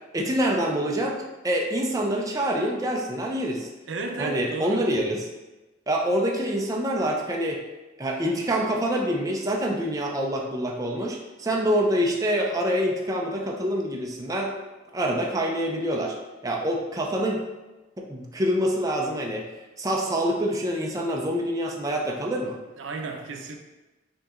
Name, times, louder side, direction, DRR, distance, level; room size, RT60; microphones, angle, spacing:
voice 1, 0.1-3.7 4.2-5.2 5.9-7.6 8.0-14.5 14.9-16.2 16.4-17.4 18.0-19.5 19.8-22.6, equal, 20° right, 0 dB, 0.5 m, -26 dB
voice 2, 3.9-4.8 22.8-23.6, right 3 dB, 80° right, 3 dB, 0.6 m, -33 dB
5.1 x 2.8 x 3.7 m, 1.1 s
head